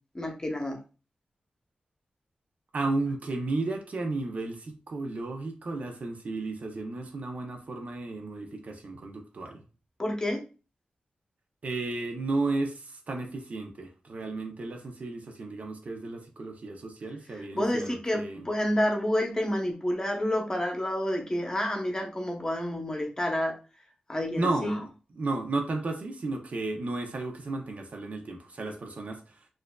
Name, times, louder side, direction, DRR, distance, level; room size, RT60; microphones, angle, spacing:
voice 1, 0.1-0.8 10.0-10.4 17.5-23.6 24.1-24.7, left 1 dB, 25° left, 0.8 m, -29 dB
voice 2, 2.7-9.6 11.6-18.5 24.4-24.9 25.2-29.4, right 2 dB, 55° right, 0.7 m, -33 dB
4.3 x 2.5 x 2.3 m
wide cardioid pair, 95°, 3 cm